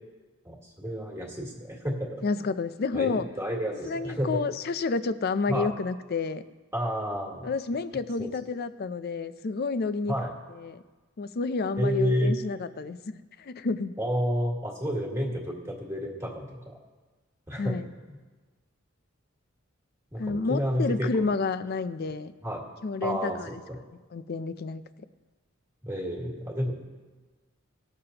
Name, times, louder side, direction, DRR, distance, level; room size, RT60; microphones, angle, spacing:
voice 1, 0.5-2.2 2.9-4.4 5.5-5.7 6.7-7.5 8.2-8.3 10.1-10.3 11.8-12.3 14.0-16.8 17.5-17.8 20.1-21.3 22.4-22.6 23.0-23.4 23.7-23.8 25.8-26.7, equal, 15° right, -1 dB, 1.8 m, -30 dB
voice 2, 2.2-3.3 3.8-6.4 7.4-10.1 10.6-10.8 11.2-14.0 17.6-17.9 20.2-22.3 22.8-23.5 24.1-24.8, left 4 dB, 50° left, 13 dB, 0.5 m, -30 dB
20.0 x 6.8 x 2.9 m, 1.3 s
head